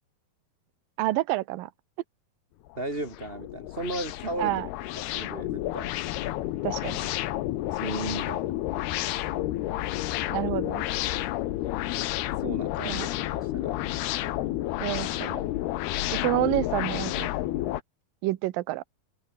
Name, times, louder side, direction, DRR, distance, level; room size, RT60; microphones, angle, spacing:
voice 1, 1.0-1.7 4.4-4.7 6.6-7.0 10.3-10.8 12.8-13.1 14.8-15.4 16.1-17.3 18.2-18.8, right 17 dB, 70° right, 2.5 m, -28 dB
sound 1, 2.7-17.8, left 15 dB, 90° left, 3.1 m, -30 dB
voice 2, 2.8-4.6 5.1-5.9 7.7-8.5 12.4-13.1 13.3-13.8, right 2 dB, 15° right, 2.2 m, -35 dB
open air
omnidirectional pair, 4.4 m